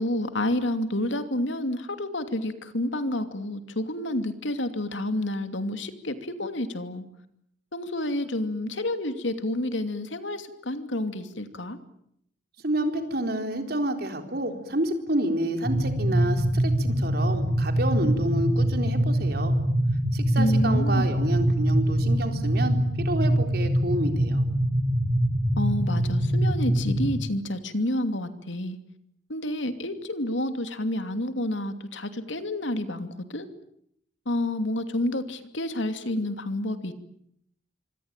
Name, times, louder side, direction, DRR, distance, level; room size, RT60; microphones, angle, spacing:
voice 1, 0.0-7.1 7.7-11.8 20.4-21.1 25.6-28.8 29.3-33.5 34.3-36.9, left 1 dB, 80° left, 8 dB, 2.7 m, -29 dB
voice 2, 12.6-19.6 20.1-24.4, right 1 dB, 55° right, 6 dB, 4.2 m, -29 dB
sound 1, 15.6-27.2, right 1 dB, 25° right, 7.1 m, -24 dB
26.0 x 25.5 x 9.1 m, 0.73 s
head